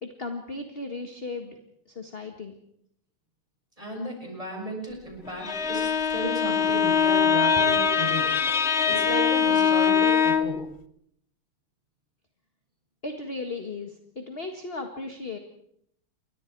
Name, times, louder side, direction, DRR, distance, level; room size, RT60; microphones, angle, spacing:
voice 1, 0.0-1.6 1.9-2.6 13.0-15.4, left 3 dB, 30° left, 5 dB, 1.7 m, -36 dB
voice 2, 3.8-8.3 8.8-10.6, equal, 15° right, 1 dB, 6.9 m, -34 dB
Bowed string instrument, 5.3-10.6, left 6 dB, 45° left, 0.9 m, -22 dB
29.0 x 23.0 x 4.7 m, 0.69 s
omnidirectional pair, 2.4 m